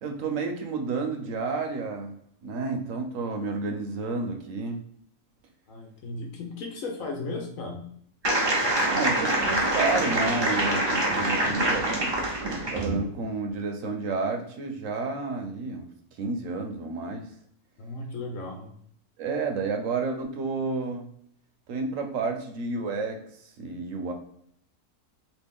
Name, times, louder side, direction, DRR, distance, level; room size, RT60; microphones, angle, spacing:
voice 1, 0.0-2.2 2.4-4.8 8.9-12.0 12.7-15.9 16.2-17.3 19.2-21.1 21.7-23.2 23.6-24.1, right 3 dB, 65° right, 3 dB, 0.9 m, -30 dB
voice 2, 5.7-7.9 17.8-18.7, left 3 dB, 65° left, 1 dB, 1.2 m, -35 dB
sound 1, 8.2-12.9, right 1 dB, 40° right, 0.3 m, -25 dB
3.0 x 2.8 x 3.5 m, 0.67 s
omnidirectional pair, 1.6 m